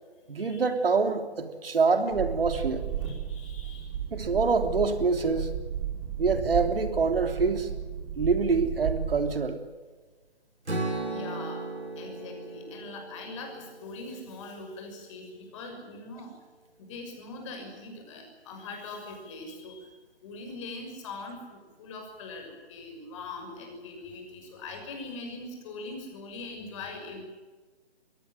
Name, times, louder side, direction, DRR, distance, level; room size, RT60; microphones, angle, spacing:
voice 1, 0.3-2.9 4.1-5.5 6.2-7.7 8.2-9.6, right 4 dB, 60° right, 7 dB, 3.3 m, -25 dB
sound 1, 2.1-9.3, right 8 dB, 25° right, 4.9 m, -34 dB
voice 2, 3.0-4.0 11.0-11.7 12.0-16.3 16.8-19.9 20.2-27.2, left 3 dB, 30° left, 4 dB, 6.3 m, -42 dB
Strum, 10.7-14.8, right 2 dB, 90° right, 5.8 m, -36 dB
22.5 x 18.0 x 9.0 m, 1.3 s
figure-of-eight pair, 150°, 33 cm